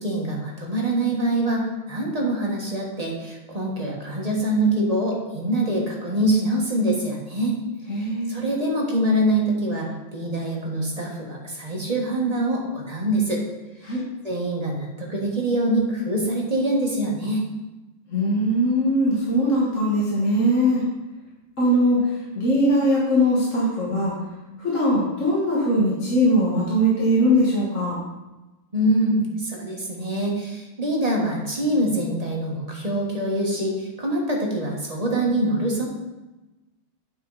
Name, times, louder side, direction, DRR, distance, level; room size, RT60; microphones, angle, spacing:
voice 1, 0.0-7.6 8.0-13.4 13.8-14.0 14.2-17.4 28.7-35.8, right 1 dB, 20° right, -2 dB, 1.4 m, -24 dB
voice 2, 7.9-8.5 13.8-14.0 18.1-20.8 21.6-24.1 24.6-28.0, equal, 40° left, -6 dB, 2.0 m, -21 dB
8.9 x 6.1 x 4.1 m, 1.1 s
omnidirectional pair, 2.1 m